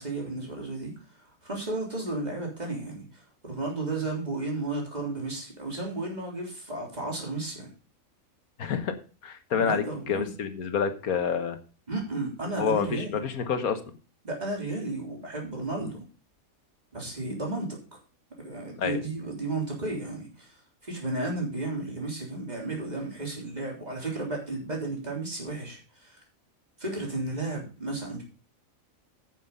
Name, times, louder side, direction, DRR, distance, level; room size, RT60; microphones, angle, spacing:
voice 1, 0.0-7.7 9.5-10.3 11.9-13.1 14.2-16.0 16.9-18.0 18.4-26.2 26.8-28.2, right 2 dB, 30° right, -1 dB, 3.7 m, -33 dB
voice 2, 8.6-9.0 9.2-11.6 12.6-13.8 15.8-15.9 18.8-19.0, left 6 dB, 85° left, 9 dB, 1.7 m, -28 dB
9.3 x 7.3 x 5.4 m, 0.35 s
omnidirectional pair, 1.5 m